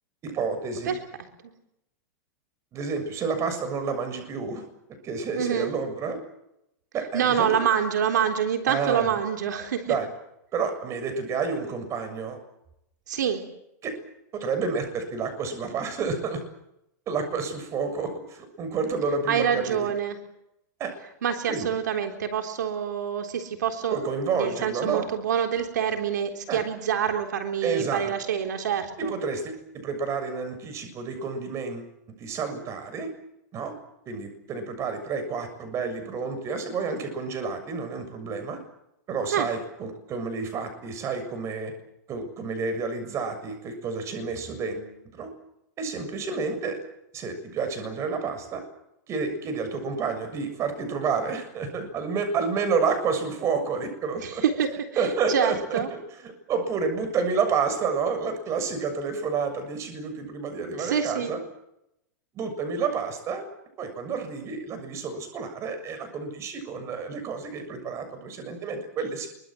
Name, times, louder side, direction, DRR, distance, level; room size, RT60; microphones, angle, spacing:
voice 1, 0.2-1.0 2.7-4.6 5.0-6.2 6.9-7.6 8.7-9.2 9.9-10.1 10.5-12.4 13.8-14.0 14.3-16.4 17.1-19.9 20.8-20.9 21.5-21.7 23.9-25.1 26.5-26.6 27.6-28.1 29.0-31.9 32.2-33.1 33.5-33.7 34.1-38.6 39.1-41.7 42.1-45.3 45.8-46.8 47.1-48.6 49.1-54.4 55.0-61.4 62.4-63.5 63.8-69.3, right 5 dB, 30° right, 8 dB, 7.0 m, -30 dB
voice 2, 5.4-5.7 7.1-10.0 13.1-13.4 19.3-20.2 21.2-24.0 24.3-29.1 39.3-39.5 54.2-55.9 60.8-61.3, right 8 dB, 90° right, 5 dB, 3.7 m, -26 dB
24.5 x 23.5 x 7.8 m, 0.83 s
supercardioid pair, 140°, 9 cm